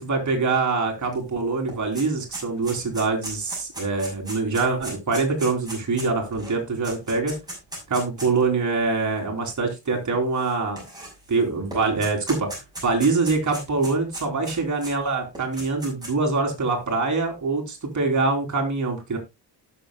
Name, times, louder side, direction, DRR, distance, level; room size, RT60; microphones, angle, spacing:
voice 1, 0.0-7.3 7.9-10.8 11.3-12.5 12.8-19.2, right 3 dB, 40° right, 2 dB, 3.3 m, -24 dB
sound 1, 1.1-1.2 1.5-8.4 9.2-9.3 10.3-11.4 11.7-14.9 15.3-16.3, right 1 dB, 10° right, 6.3 m, -37 dB
18.5 x 6.8 x 2.2 m, 0.22 s
wide cardioid pair, 155°, 43 cm